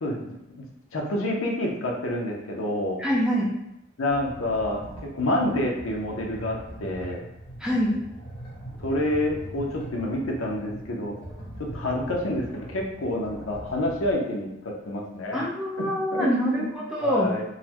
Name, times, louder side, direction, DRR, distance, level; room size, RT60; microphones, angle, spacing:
voice 1, 0.0-0.7 0.9-3.0 4.0-7.2 8.8-11.2 11.6-15.5 15.8-16.7 17.0-17.4, left 1 dB, 70° left, 0 dB, 0.6 m, -28 dB
voice 2, 3.0-3.5 7.6-8.0 15.3-17.3, equal, 5° right, -5 dB, 0.6 m, -25 dB
sound 1, 4.1-14.1, right 1 dB, 25° left, 1.3 m, -41 dB
3.8 x 2.1 x 2.9 m, 0.83 s
head